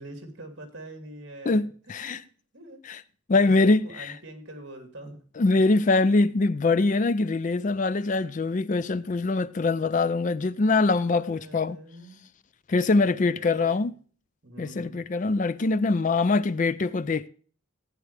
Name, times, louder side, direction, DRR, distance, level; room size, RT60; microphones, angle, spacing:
voice 1, 0.0-1.7 2.0-2.1 2.5-2.8 3.4-5.2 7.5-7.6 10.5-12.2 12.8-13.8 14.4-15.0, right 1 dB, 55° right, 2.9 m, -45 dB
voice 2, 1.5-2.2 2.9-3.0 3.3-4.1 5.4-11.8 12.7-13.9 14.6-17.3, left 3 dB, 35° left, 0.4 m, -23 dB
15.0 x 9.3 x 3.3 m
head